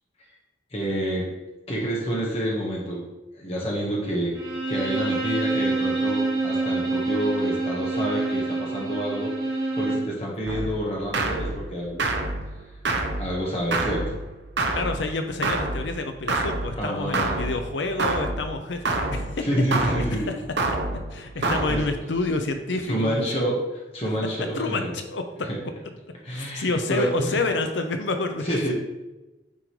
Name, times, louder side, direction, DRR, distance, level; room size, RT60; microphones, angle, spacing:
voice 1, 0.7-1.3 1.7-3.0 3.3-9.3 9.8-12.1 13.2-14.0 16.7-17.4 19.4-20.3 21.3-21.8 22.8-24.9 25.5-25.6 26.2-27.4 28.4-28.7, equal, 35° left, -4 dB, 1.5 m, -28 dB
Bowed string instrument, 4.3-10.1, right 3 dB, 20° right, 1.6 m, -26 dB
sound 1, 10.5-22.2, right 2 dB, 75° right, 0.9 m, -28 dB
voice 2, 14.7-19.4 19.8-20.2 21.1-23.4 24.6-25.2 26.3-28.7, left 2 dB, 85° left, 6 dB, 0.6 m, -28 dB
9.4 x 5.2 x 3.2 m, 1.0 s
head